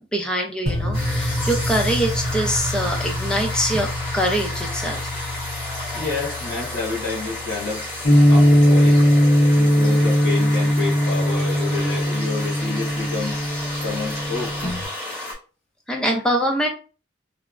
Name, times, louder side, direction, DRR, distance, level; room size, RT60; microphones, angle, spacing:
voice 1, 0.0-5.1 15.9-16.7, equal, 5° left, 1 dB, 0.5 m, -24 dB
sound 1, 0.7-8.8, left 1 dB, 55° right, 0.6 m, -29 dB
sound 2, 0.9-15.4, left 1 dB, 30° left, 1.3 m, -32 dB
voice 2, 5.9-7.8 8.3-9.0 9.5-13.4 13.8-14.5, left 4 dB, 65° left, -5 dB, 1.4 m, -29 dB
sound 3, 8.0-14.8, equal, 45° left, 0.7 m, -18 dB
3.4 x 2.0 x 2.4 m, 0.35 s
head